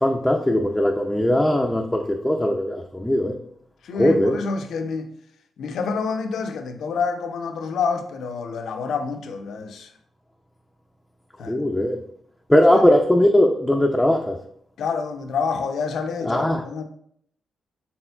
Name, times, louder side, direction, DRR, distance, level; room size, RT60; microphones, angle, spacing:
voice 1, 0.0-3.4 4.0-4.4 11.5-12.0 12.5-14.4 16.3-16.6, left 1 dB, 10° left, 0.4 m, -19 dB
voice 2, 3.8-5.1 5.6-9.9 11.4-11.6 12.7-12.8 14.8-16.8, left 5 dB, 75° left, 0.4 m, -28 dB
4.3 x 3.6 x 2.3 m
supercardioid pair, 55°, 0 cm